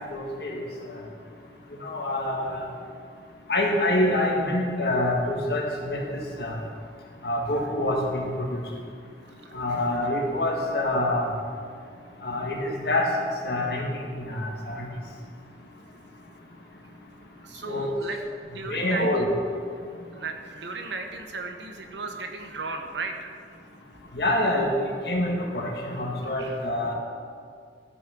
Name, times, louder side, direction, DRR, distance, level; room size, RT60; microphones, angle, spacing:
voice 1, 0.1-0.6 0.9-1.0 1.8-2.7 3.5-6.6 7.2-8.6 9.5-11.3 12.2-13.1 13.4-14.9 17.7-17.9 18.7-19.3 24.1-26.9, left 1 dB, 60° left, 0 dB, 1.8 m, -26 dB
voice 2, 9.4-9.9 17.4-19.3 20.1-23.3 26.4-26.5, right 3 dB, 80° right, 5 dB, 1.1 m, -36 dB
12.0 x 6.5 x 6.0 m, 2.2 s
head